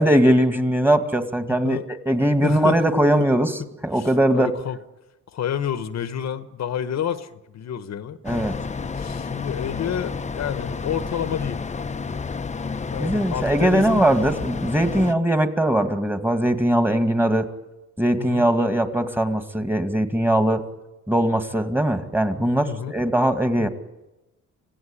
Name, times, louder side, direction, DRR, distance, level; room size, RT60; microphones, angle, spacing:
voice 1, 0.0-3.5 3.8-4.5 8.2-8.6 13.0-17.5 18.0-20.6 21.1-23.7, right 1 dB, 5° right, 8 dB, 2.3 m, -20 dB
voice 2, 2.4-2.8 3.2-3.3 3.6-4.8 5.3-8.2 8.9-11.6 12.9-14.1 18.2-18.5 22.6-23.0 23.6-23.7, left 9 dB, 60° left, 11 dB, 1.3 m, -29 dB
sound 1, 8.2-15.1, left 5 dB, 25° left, 0.9 m, -30 dB
26.0 x 17.0 x 10.0 m, 1.0 s
cardioid pair, 90°, 30 cm